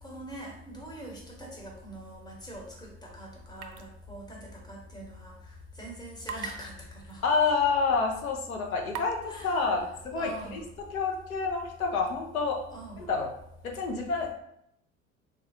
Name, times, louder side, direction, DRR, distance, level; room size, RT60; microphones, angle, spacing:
voice 1, 0.0-5.5 5.8-7.2 9.0-9.8 10.2-10.7 12.7-13.1, right 1 dB, 10° left, -2 dB, 1.0 m, -43 dB
sound 1, 3.6-3.8 4.1-4.2 6.2-6.5 7.1-7.2 7.9-8.0 8.9-9.2, right 7 dB, 60° right, 0.5 m, -37 dB
voice 2, 7.2-12.6 13.0-13.3 13.6-14.3, left 4 dB, 80° left, 1 dB, 0.6 m, -28 dB
3.6 x 2.3 x 2.8 m, 0.74 s
figure-of-eight pair, 70°, 42 cm